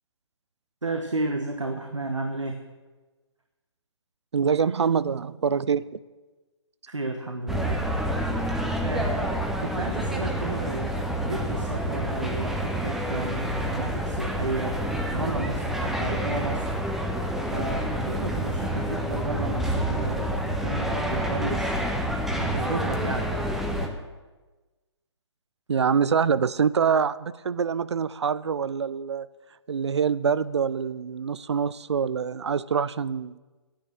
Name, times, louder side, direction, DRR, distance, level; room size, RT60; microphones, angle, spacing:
voice 1, 0.8-2.6 6.9-7.8 8.8-11.0 11.2-14.8 15.1-16.7 17.5-21.7 22.3-23.3, right 2 dB, 85° right, 4 dB, 1.4 m, -32 dB
voice 2, 4.3-5.9 25.7-29.3 29.7-33.4, right 6 dB, 65° right, 18 dB, 0.6 m, -25 dB
sound 1, 7.5-23.9, equal, ahead, 1.0 m, -28 dB
12.0 x 10.0 x 7.3 m, 1.2 s
figure-of-eight pair, 135°, 15 cm